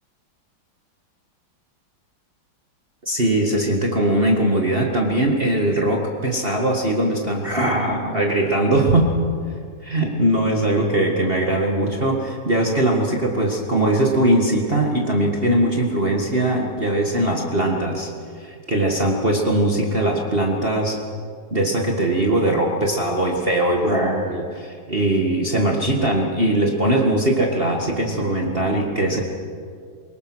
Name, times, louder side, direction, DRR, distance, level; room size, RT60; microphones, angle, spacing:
voice 1, 3.0-9.1 9.8-18.1 18.4-21.0 21.5-29.2, right 1 dB, 30° right, -1 dB, 2.1 m, -20 dB
24.0 x 22.5 x 6.3 m, 2.2 s
omnidirectional pair, 2.1 m